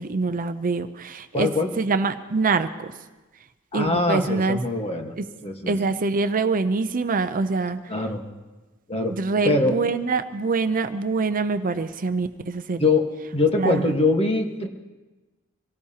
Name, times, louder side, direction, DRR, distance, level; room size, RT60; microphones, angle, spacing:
voice 1, 0.0-1.5 1.8-2.9 3.7-4.6 5.2-5.3 5.7-7.8 9.1-12.9 13.6-14.0, right 4 dB, 40° right, 10 dB, 0.6 m, -25 dB
voice 2, 1.3-1.7 3.7-5.1 5.4-5.7 7.9-8.2 8.9-9.2 9.4-9.7 12.8-13.1 13.3-14.7, left 2 dB, 30° left, 3 dB, 1.4 m, -22 dB
25.0 x 18.0 x 2.9 m, 1.2 s
head